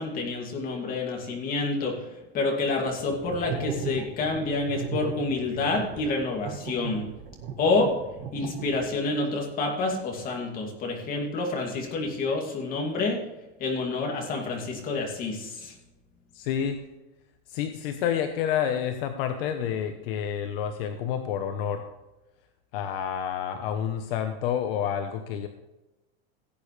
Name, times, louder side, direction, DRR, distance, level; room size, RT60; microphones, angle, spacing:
voice 1, 0.0-7.1 7.6-8.0 8.3-13.2 13.6-15.7, left 3 dB, 25° left, 1 dB, 2.5 m, -28 dB
sound 1, 3.0-9.1, right 6 dB, 35° right, 1.5 m, -36 dB
voice 2, 16.3-16.8 17.5-21.8 22.7-25.5, left 9 dB, 60° left, 7 dB, 1.0 m, -29 dB
17.0 x 8.6 x 3.3 m, 1.0 s
supercardioid pair, 170°, 32 cm